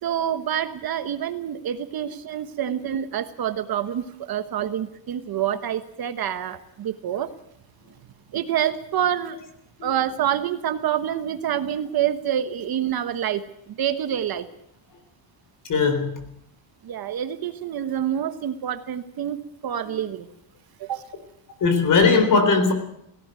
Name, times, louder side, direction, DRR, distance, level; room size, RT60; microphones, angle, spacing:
voice 1, 0.0-7.3 8.3-9.4 9.8-13.4 13.7-14.5 16.8-20.3 20.8-21.0, right 10 dB, 50° right, 1.3 m, -27 dB
voice 2, 15.7-16.2 21.6-22.7, left 4 dB, 40° left, 3.9 m, -19 dB
17.5 x 17.0 x 9.0 m
cardioid pair, 155°, 48 cm